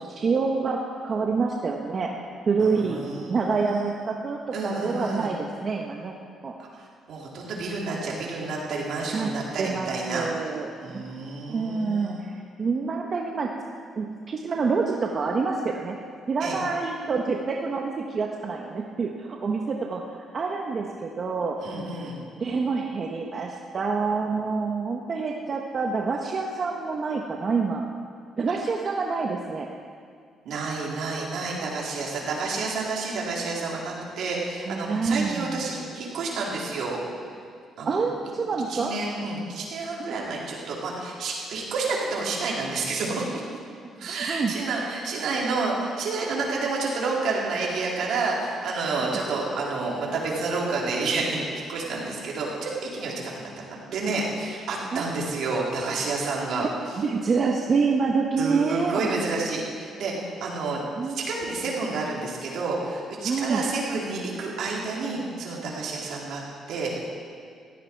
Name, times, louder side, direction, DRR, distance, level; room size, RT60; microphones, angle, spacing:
voice 1, 0.0-2.1 2.5-3.0 3.3-6.1 6.4-6.5 9.1-9.3 9.6-11.1 11.5-13.5 13.9-15.9 16.3-21.6 22.4-27.8 28.4-29.7 34.6-35.7 37.8-38.9 40.0-40.1 44.0-44.5 54.9-55.0 56.6-56.7 57.0-59.0 61.0-61.2 63.2-63.7, right 4 dB, 45° right, 0 dB, 1.3 m, -27 dB
voice 2, 2.6-4.0 4.5-5.3 6.7-10.3 10.8-12.2 16.4-16.6 21.6-22.2 30.4-37.0 37.8-38.0 38.7-43.2 44.0-51.4 51.7-56.7 58.4-60.8 61.1-66.4 66.7-67.1, right 3 dB, 75° right, -3 dB, 4.1 m, -29 dB
18.5 x 16.0 x 4.8 m, 2.3 s
cardioid pair, 90°, 0 cm